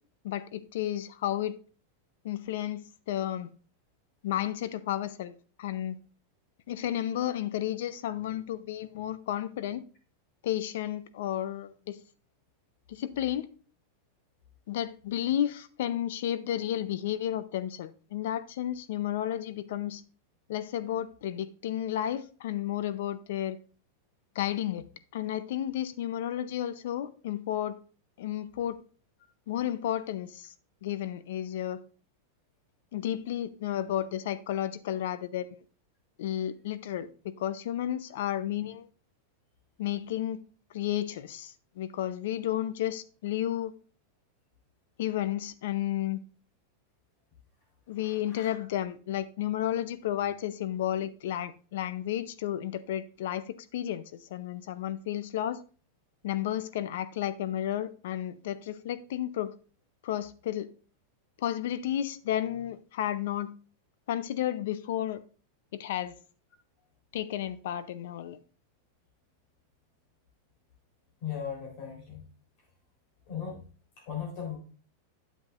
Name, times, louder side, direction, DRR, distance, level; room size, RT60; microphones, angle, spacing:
voice 1, 0.2-1.6 2.2-3.5 4.2-6.0 6.7-9.8 10.4-12.0 12.9-13.5 14.7-20.0 20.5-23.6 24.3-24.8 25.1-27.8 28.2-28.8 29.5-30.5 30.8-31.8 32.9-35.6 36.2-37.1 37.4-38.9 39.8-40.4 40.7-43.7 45.0-46.2 47.9-55.6 56.2-59.5 60.0-60.7 61.4-63.5 64.1-65.2 65.7-66.1 67.1-68.4, left 11 dB, 70° left, 0.6 m, -32 dB
voice 2, 48.0-48.6 71.2-72.2 73.3-73.6 74.1-74.6, left 8 dB, 50° left, 3.7 m, -37 dB
9.1 x 7.6 x 2.5 m
supercardioid pair, 145°, 0 cm